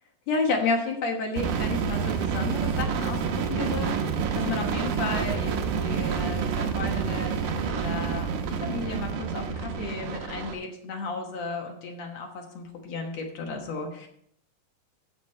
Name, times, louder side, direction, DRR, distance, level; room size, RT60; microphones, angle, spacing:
voice 1, 0.3-14.1, left 3 dB, 60° left, 2 dB, 2.2 m, -32 dB
sound 1, 1.4-10.5, right 6 dB, 70° right, 2.2 m, -28 dB
14.5 x 5.4 x 4.3 m, 0.68 s
omnidirectional pair, 4.1 m